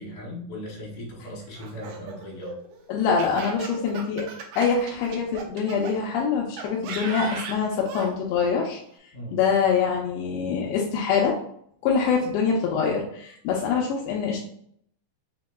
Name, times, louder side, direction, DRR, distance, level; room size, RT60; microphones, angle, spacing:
voice 1, 0.0-2.5 9.1-9.4, left 1 dB, 55° left, -5 dB, 3.0 m, -38 dB
Laughter, 1.6-5.9 6.6-8.1, right 5 dB, 80° right, 2.7 m, -37 dB
voice 2, 2.9-4.3 4.6-8.8 9.3-11.4 11.8-14.4, left 6 dB, 80° left, -1 dB, 2.2 m, -24 dB
6.9 x 2.8 x 2.2 m, 0.66 s
omnidirectional pair, 4.9 m